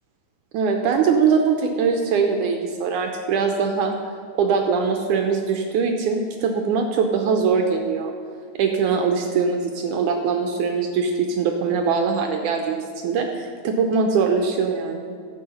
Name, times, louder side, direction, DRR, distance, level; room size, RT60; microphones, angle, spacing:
voice 1, 0.5-3.9 4.4-8.1 8.6-15.1, right 5 dB, 75° right, 3 dB, 1.9 m, -22 dB
13.0 x 7.7 x 5.5 m, 2.3 s
omnidirectional pair, 4.2 m